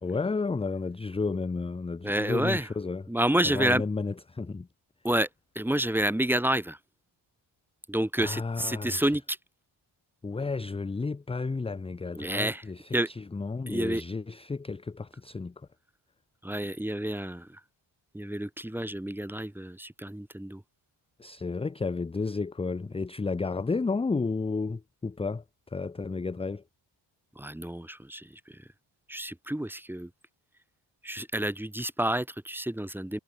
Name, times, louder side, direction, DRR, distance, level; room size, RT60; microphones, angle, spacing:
voice 1, 0.0-3.1 3.4-4.7 8.2-9.1 10.2-15.7 21.2-26.6, left 4 dB, 15° left, 0.4 m, -32 dB
voice 2, 2.0-2.6 3.1-3.8 5.0-5.3 5.6-6.8 7.9-9.4 12.2-12.6 12.9-13.1 13.7-14.0 16.4-17.5 18.1-20.6 27.4-28.3 29.1-30.1 31.0-33.2, right 1 dB, 5° right, 1.0 m, -29 dB
wide cardioid pair, 170°, 47 cm